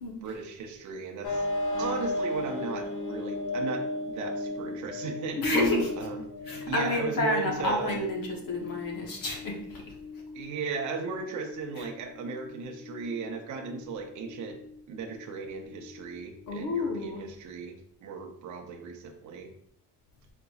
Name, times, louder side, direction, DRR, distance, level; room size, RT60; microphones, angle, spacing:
voice 1, 0.2-1.4 1.8-8.0 10.3-14.6 14.9-19.5, right 5 dB, 45° right, 2 dB, 0.7 m, -36 dB
sound 1, 1.2-16.7, left 2 dB, 85° left, 0.9 m, -37 dB
voice 2, 5.4-5.9 6.5-10.0 11.8-11.9 16.5-17.3, left 2 dB, 55° left, 1 dB, 1.0 m, -30 dB
4.4 x 4.0 x 2.3 m, 0.67 s
cardioid pair, 150°, 40 cm